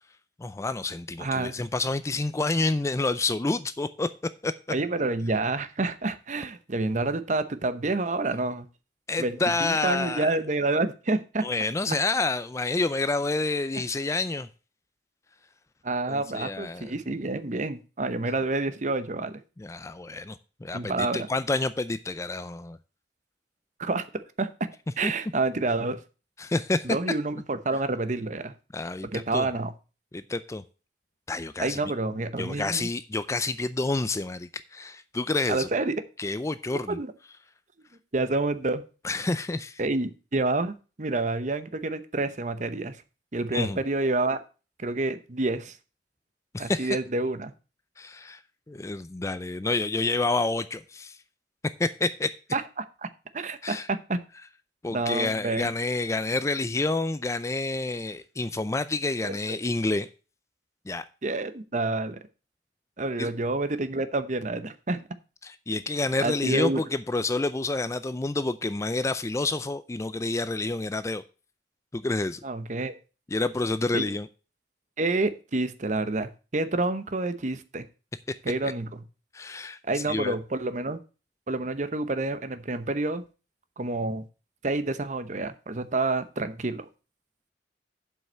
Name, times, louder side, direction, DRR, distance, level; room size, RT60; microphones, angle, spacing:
voice 1, 0.4-4.1 4.4-4.5 9.1-10.4 11.4-14.5 16.1-16.9 19.6-22.8 25.0-25.1 26.4-26.8 28.7-29.5 30.1-30.6 31.3-31.8 32.4-35.7 36.2-37.0 39.0-39.8 43.5-43.8 46.5-47.0 48.0-48.4 48.7-51.2 51.6-52.3 53.6-53.9 54.8-60.1 60.9-61.0 63.2-63.3 65.4-71.2 71.9-72.4 73.3-74.3 78.6-78.7 79.3-80.3, left 3 dB, 15° left, 0.4 m, -28 dB
voice 2, 1.2-1.5 4.7-8.7 9.2-11.5 15.8-19.4 20.7-21.3 23.8-24.0 24.4-24.5 25.0-26.0 26.8-28.5 29.1-29.7 31.6-32.9 35.5-35.9 36.7-37.1 38.1-38.8 39.8-43.0 43.3-44.4 44.8-45.8 46.6-47.5 52.5-52.6 53.0-53.1 53.3-54.2 54.9-55.7 61.2-62.2 63.0-65.0 66.2-66.8 72.4-72.9 73.9-74.1 75.0-77.8 78.4-79.0 79.8-81.0 81.5-83.2 83.8-84.2 84.6-86.9, right 2 dB, 45° right, 0.8 m, -28 dB
7.7 x 5.6 x 7.3 m
head